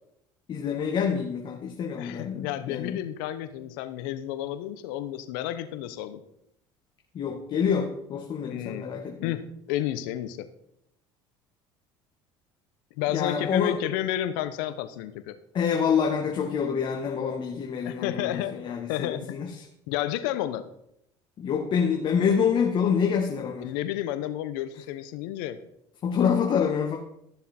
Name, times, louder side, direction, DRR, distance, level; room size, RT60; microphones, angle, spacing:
voice 1, 0.5-3.0 7.1-9.3 13.1-13.8 15.5-19.6 21.4-23.7 26.0-27.0, left 7 dB, 45° left, 1 dB, 1.6 m, -27 dB
voice 2, 2.0-6.2 8.5-8.9 9.2-10.5 13.0-15.4 17.8-19.4 19.9-20.6 23.6-25.6, left 12 dB, 80° left, 12 dB, 1.0 m, -31 dB
13.0 x 7.2 x 4.5 m, 0.77 s
supercardioid pair, 90°, 11 cm